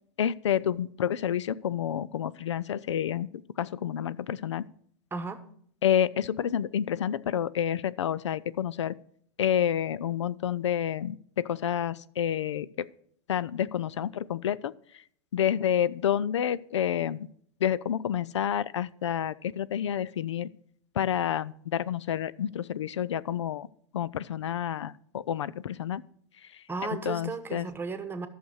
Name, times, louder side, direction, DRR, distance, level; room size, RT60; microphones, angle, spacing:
voice 1, 0.2-3.3 3.6-4.7 5.8-9.0 9.4-12.9 13.3-15.0 15.3-17.3 17.6-20.5 21.0-23.7 23.9-26.0 26.5-26.6 27.1-27.7, left 9 dB, 90° left, 19 dB, 0.4 m, -29 dB
voice 2, 5.1-5.4 26.7-28.3, right 4 dB, 15° right, 10 dB, 1.1 m, -34 dB
11.5 x 6.6 x 6.3 m, 0.63 s
hypercardioid pair, 110°, 15 cm